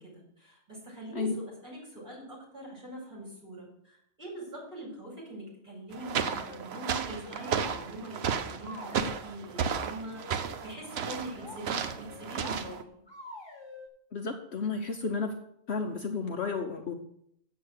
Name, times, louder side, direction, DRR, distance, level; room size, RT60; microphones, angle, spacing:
voice 1, 0.0-12.8, right 1 dB, 35° right, -3 dB, 5.6 m, -43 dB
sound 1, 5.9-12.8, right 7 dB, 60° right, 0.9 m, -34 dB
sound 2, 6.1-6.6 7.2-7.8 8.6-9.2 10.2-10.6 11.1-11.6 12.1-12.6 13.1-13.9, left 1 dB, 20° left, 1.6 m, -46 dB
voice 2, 14.1-15.3 15.7-16.9, left 4 dB, 55° left, 4 dB, 1.1 m, -32 dB
7.7 x 7.7 x 6.6 m, 0.73 s
omnidirectional pair, 1.4 m